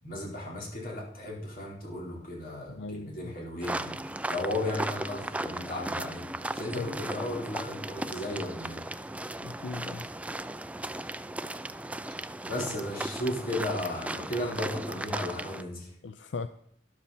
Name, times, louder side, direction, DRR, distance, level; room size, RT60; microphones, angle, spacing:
voice 1, 0.0-3.9 4.3-6.2 6.5-8.8 12.5-15.9, left 1 dB, 50° left, -2 dB, 4.4 m, -35 dB
voice 2, 2.7-3.3 6.7-6.9 9.4-10.1 12.6-12.8 16.0-16.5, left 4 dB, 85° left, 11 dB, 0.5 m, -38 dB
sound 1, 3.6-15.6, right 1 dB, 5° right, 0.4 m, -36 dB
12.5 x 11.5 x 4.4 m, 0.66 s
head